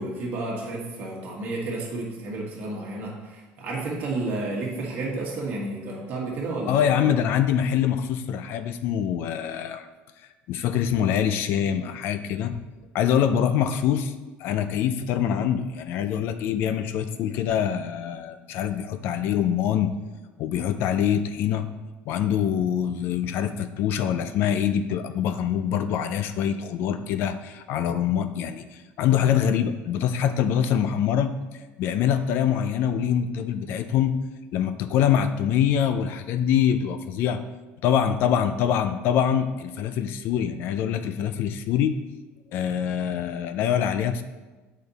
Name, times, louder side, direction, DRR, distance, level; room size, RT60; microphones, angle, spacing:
voice 1, 0.0-7.1, right 2 dB, 45° right, -3 dB, 1.6 m, -31 dB
voice 2, 6.7-9.9 10.5-12.6 12.9-14.1 14.4-19.9 20.4-21.7 22.1-31.3 31.8-34.1 34.5-37.4 37.8-42.0 42.5-44.2, left 9 dB, 50° left, 10 dB, 0.4 m, -24 dB
8.0 x 5.1 x 4.1 m, 1.2 s
cardioid pair, 170°, 5 cm